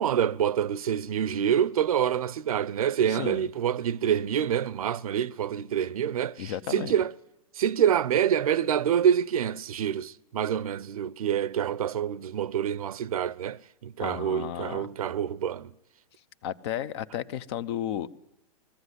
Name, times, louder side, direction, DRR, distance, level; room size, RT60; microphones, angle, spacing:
voice 1, 0.0-7.1 7.5-15.7, right 9 dB, 80° right, 0.7 m, -26 dB
voice 2, 3.1-3.5 6.4-6.9 14.0-14.9 16.4-18.1, left 10 dB, 50° left, 0.8 m, -33 dB
20.5 x 14.5 x 9.7 m
hypercardioid pair, 140°, 18 cm